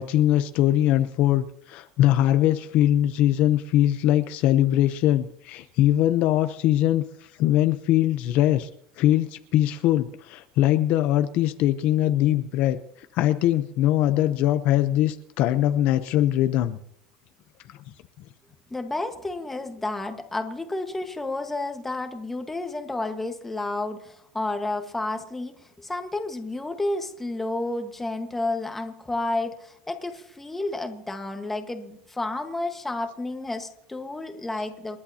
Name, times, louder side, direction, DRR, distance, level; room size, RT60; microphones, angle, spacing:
voice 1, 0.0-8.7 9.0-12.8 13.1-16.8, left 13 dB, 50° left, 10 dB, 0.7 m, -22 dB
voice 2, 18.7-35.0, left 2 dB, 5° left, 5 dB, 1.4 m, -31 dB
29.0 x 11.0 x 2.8 m, 0.77 s
cardioid pair, 155°, 3 cm